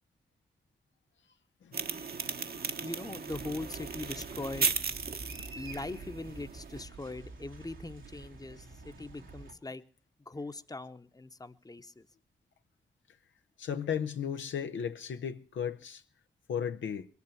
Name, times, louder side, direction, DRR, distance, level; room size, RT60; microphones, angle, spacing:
sound 1, 1.7-6.8, right 5 dB, 55° right, 1.2 m, -36 dB
voice 1, 2.8-4.7 5.6-9.8 10.3-12.1, left 2 dB, 20° left, 1.0 m, -41 dB
sound 2, 3.3-9.5, right 3 dB, 90° right, 2.5 m, -48 dB
voice 2, 13.6-16.0 16.5-17.1, left 8 dB, 80° left, 0.8 m, -35 dB
21.0 x 8.4 x 7.1 m
supercardioid pair, 45°, 19 cm